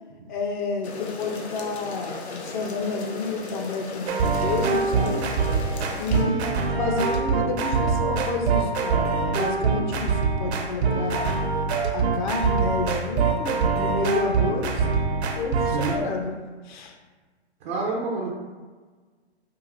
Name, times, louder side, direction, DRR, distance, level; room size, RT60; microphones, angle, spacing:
voice 1, 0.3-5.3 5.5-5.6 6.0-11.3 11.9-14.9 15.4-16.3 16.6-16.9, left 4 dB, 45° left, 2 dB, 0.7 m, -30 dB
sound 1, 0.8-6.2, left 3 dB, 75° left, 0.8 m, -37 dB
sound 2, 4.1-16.0, right 4 dB, 70° right, 0.7 m, -24 dB
voice 2, 6.1-6.5 15.7-16.0 17.6-18.3, right 3 dB, 20° right, -4 dB, 0.4 m, -29 dB
4.8 x 2.5 x 2.5 m, 1.4 s
hypercardioid pair, 130°, 33 cm